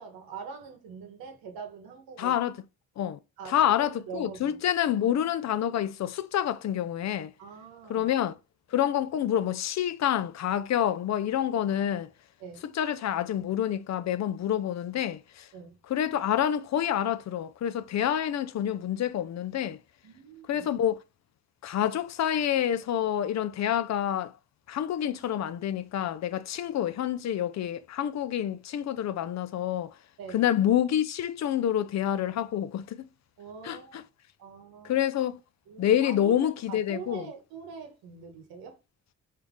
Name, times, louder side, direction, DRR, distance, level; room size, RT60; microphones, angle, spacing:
voice 1, 0.0-2.4 3.4-4.6 7.4-8.1 8.8-8.9 12.4-12.6 15.5-15.8 20.0-20.7 30.2-30.4 33.4-34.1 34.4-35.0 35.7-38.8, right 6 dB, 80° right, 1.0 m, -44 dB
voice 2, 2.2-2.6 3.0-3.2 3.5-7.3 7.9-8.3 8.7-12.1 12.7-15.5 15.9-19.8 20.5-21.0 21.6-24.3 24.7-29.9 30.3-33.1 33.6-34.0 34.8-35.4 35.8-37.3, left 10 dB, 50° left, 0.5 m, -27 dB
3.5 x 2.8 x 3.4 m
supercardioid pair, 55°, 35 cm